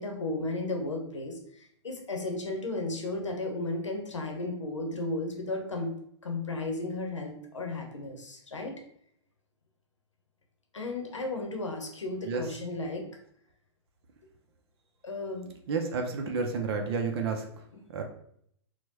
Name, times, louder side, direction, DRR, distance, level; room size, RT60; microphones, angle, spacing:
voice 1, 0.0-5.9 6.2-8.8 10.7-13.0 15.0-15.5 17.7-17.8, left 2 dB, 90° left, 2 dB, 0.7 m, -34 dB
voice 2, 15.7-17.4 17.9-18.0, right 4 dB, 60° right, 4 dB, 0.5 m, -30 dB
4.4 x 2.2 x 2.8 m, 0.67 s
hypercardioid pair, 115°, 15 cm